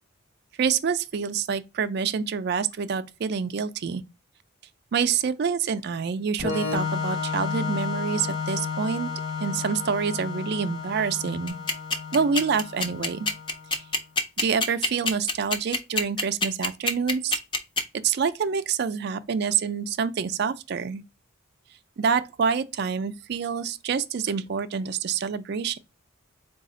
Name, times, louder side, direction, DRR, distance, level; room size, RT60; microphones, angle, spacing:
voice 1, 0.6-4.0 4.9-9.1 9.4-11.6 12.1-13.3 14.4-17.4 18.0-21.0 22.0-25.8, right 6 dB, 50° right, 0.4 m, -27 dB
Organ, 6.4-13.9, left 5 dB, 40° left, 2.5 m, -32 dB
sound 1, 11.5-17.8, left 3 dB, 25° left, 0.4 m, -24 dB
4.1 x 2.3 x 3.7 m
head